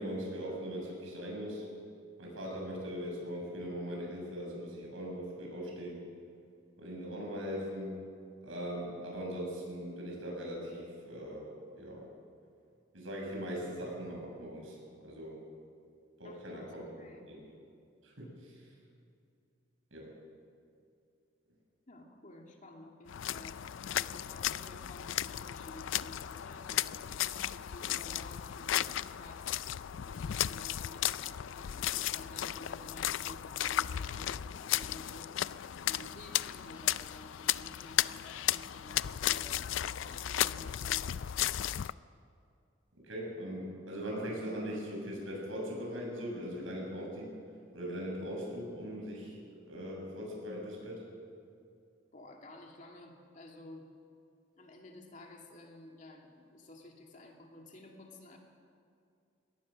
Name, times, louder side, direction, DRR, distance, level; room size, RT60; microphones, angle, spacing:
voice 1, 0.0-1.7 2.2-6.0 6.8-8.0 8.4-11.5 11.8-12.1 12.9-15.4 16.2-16.8 17.3-17.4 18.0-18.7 19.9-20.1 43.0-47.3 47.7-49.4 49.7-51.1, equal, 80° right, -2 dB, 7.2 m, -40 dB
voice 2, 16.2-17.2 21.9-23.6 24.0-29.5 30.0-41.1 52.1-53.9 54.5-58.4, left 1 dB, 40° left, 1 dB, 2.4 m, -52 dB
sound 1, 23.1-41.9, left 12 dB, 75° left, 0.4 m, -35 dB
22.5 x 18.5 x 6.5 m, 2.5 s
head